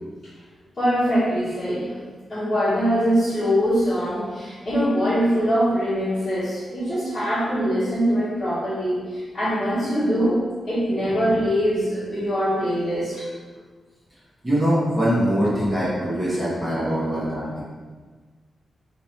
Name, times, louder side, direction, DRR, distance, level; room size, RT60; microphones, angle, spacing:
voice 1, 0.8-2.0 2.3-13.2, equal, 25° left, -16 dB, 1.5 m, -23 dB
voice 2, 14.4-17.6, equal, 15° right, -10 dB, 1.3 m, -22 dB
3.6 x 2.8 x 3.1 m, 1.4 s
wide cardioid pair, 155°, 0 cm